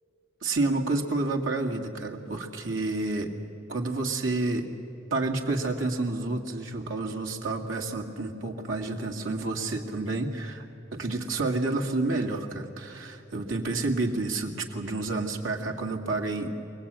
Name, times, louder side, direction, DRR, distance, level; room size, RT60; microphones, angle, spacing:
voice 1, 0.4-3.3 3.7-4.7 5.1-10.6 10.9-16.5, right 2 dB, 80° right, 3 dB, 2.1 m, -29 dB
24.0 x 18.5 x 8.8 m, 2.9 s
head